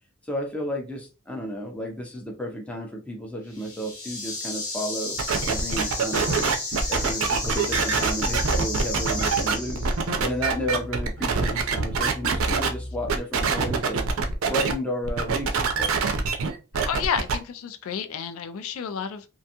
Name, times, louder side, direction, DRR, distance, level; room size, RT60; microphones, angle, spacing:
voice 1, 0.2-5.2 5.5-9.9 10.2-14.1 14.5-16.2, equal, 5° left, 0.4 m, -32 dB
sound 1, 3.5-10.2, left 2 dB, 90° left, 1.0 m, -33 dB
sound 2, 5.2-12.7 13.1-14.7 15.0-17.4, right 5 dB, 70° right, 0.5 m, -25 dB
sound 3, 7.2-13.2, left 1 dB, 25° left, 0.8 m, -38 dB
voice 2, 16.8-19.3, left 7 dB, 70° left, 0.3 m, -30 dB
2.5 x 2.3 x 2.7 m
head